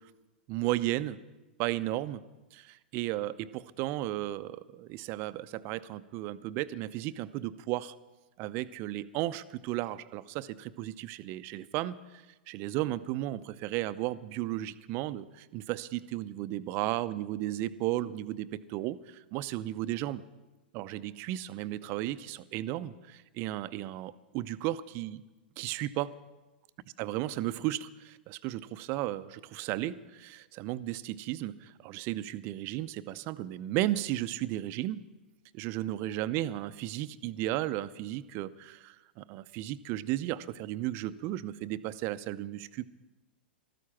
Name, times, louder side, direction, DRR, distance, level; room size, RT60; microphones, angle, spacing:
voice 1, 0.5-1.2 1.6-2.2 2.5-7.9 8.4-20.2 20.7-25.2 25.6-26.1 27.0-35.0 35.5-42.9, right 15 dB, 40° right, 14 dB, 0.6 m, -34 dB
14.0 x 13.0 x 5.8 m, 1.1 s
hypercardioid pair, 105°, 6 cm